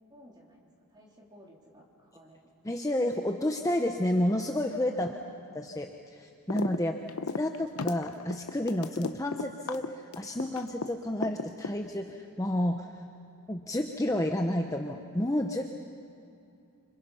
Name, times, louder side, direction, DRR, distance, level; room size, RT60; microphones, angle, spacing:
voice 1, 0.0-2.4 4.9-5.3 6.8-7.3 15.6-15.7, equal, 20° right, -2 dB, 3.7 m, -53 dB
voice 2, 2.6-5.1 5.5-6.9 7.4-12.9 13.5-15.7, left 1 dB, 15° left, 3 dB, 0.9 m, -30 dB
sound 1, 6.5-6.8 7.1-10.9 11.2-12.1, left 4 dB, 85° left, 0.9 m, -34 dB
29.5 x 26.0 x 5.7 m, 2.6 s
head